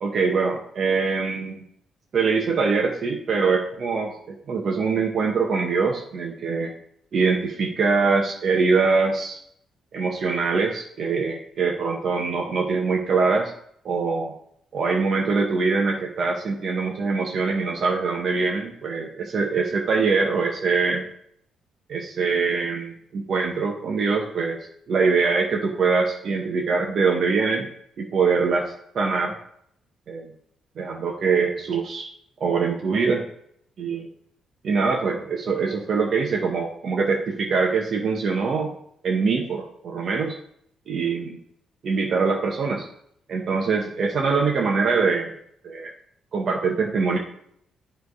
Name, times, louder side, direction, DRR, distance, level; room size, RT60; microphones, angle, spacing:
voice 1, 0.0-1.6 2.1-6.7 7.1-9.4 9.9-13.5 13.8-14.3 14.7-21.0 21.9-24.6 24.9-27.7 28.0-29.3 30.1-30.3 30.8-32.1 32.4-33.2 33.8-34.1 34.6-38.7 39.0-40.3 40.9-41.4 41.8-42.9 43.3-45.3 45.6-45.9 46.3-47.2, right 4 dB, 50° right, 0 dB, 0.9 m, -23 dB
9.2 x 3.3 x 4.8 m, 0.69 s
cardioid pair, 125°, 0 cm